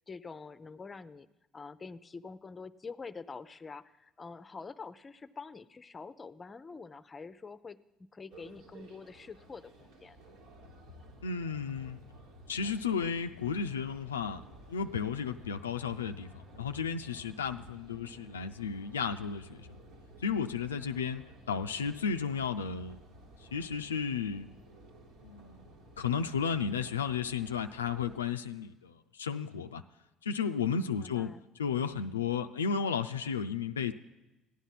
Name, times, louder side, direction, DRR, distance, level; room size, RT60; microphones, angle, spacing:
voice 1, 0.1-1.3 1.5-7.8 8.1-10.2 30.9-31.4, left 4 dB, 30° left, 14 dB, 0.6 m, -46 dB
sound 1, 8.3-28.2, equal, 70° right, 1.7 m, -54 dB
voice 2, 11.2-12.0 12.5-14.4 14.7-19.7 20.2-21.2 21.5-23.0 23.5-24.5 25.2-25.7 26.0-29.8 30.2-31.3 31.6-33.9, left 6 dB, 90° left, 7 dB, 0.3 m, -33 dB
14.5 x 10.0 x 5.7 m, 1.0 s
hypercardioid pair, 60°, 0 cm